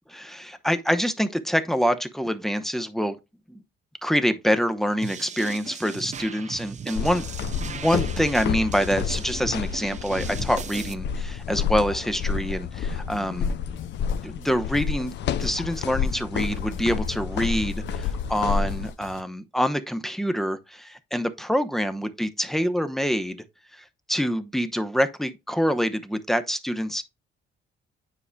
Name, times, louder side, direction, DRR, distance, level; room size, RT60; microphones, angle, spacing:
voice 1, 0.1-3.2 3.5-3.6 4.0-13.5 14.2-15.1 15.4-23.4 23.7-27.0, equal, ahead, 0.8 m, -26 dB
sound 1, 5.0-10.9, right 7 dB, 35° right, 0.6 m, -37 dB
sound 2, 7.0-18.9, left 7 dB, 60° left, 0.5 m, -29 dB
sound 3, 13.1-19.2, left 6 dB, 80° left, 1.2 m, -48 dB
9.7 x 4.8 x 2.2 m
cardioid pair, 90°, 20 cm